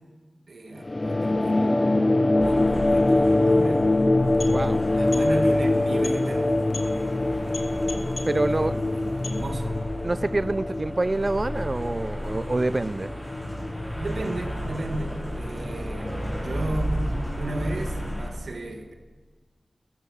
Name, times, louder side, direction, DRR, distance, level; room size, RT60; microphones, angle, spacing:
voice 1, 0.5-3.9 4.9-6.6 8.5-9.8 10.7-10.8 14.0-18.9, right 2 dB, 80° right, 1.5 m, -34 dB
sound 1, 0.8-15.7, left 2 dB, 35° left, 0.4 m, -24 dB
sound 2, 2.4-18.3, equal, ahead, 4.1 m, -34 dB
sound 3, 4.1-9.8, left 2 dB, 60° left, 1.2 m, -41 dB
voice 2, 4.5-4.8 8.3-8.8 10.0-13.1, right 2 dB, 35° right, 0.4 m, -26 dB
12.5 x 12.5 x 6.4 m
wide cardioid pair, 65°, 0 cm